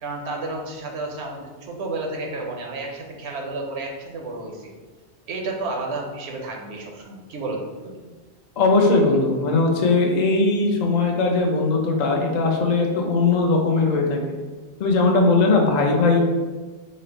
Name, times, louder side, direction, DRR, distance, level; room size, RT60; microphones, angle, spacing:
voice 1, 0.0-4.7 5.3-8.0, right 2 dB, 75° right, 1 dB, 0.9 m, -31 dB
voice 2, 8.6-14.4 14.8-16.2, left 3 dB, 50° left, 1 dB, 0.6 m, -19 dB
4.1 x 2.1 x 3.9 m, 1.3 s
omnidirectional pair, 1.1 m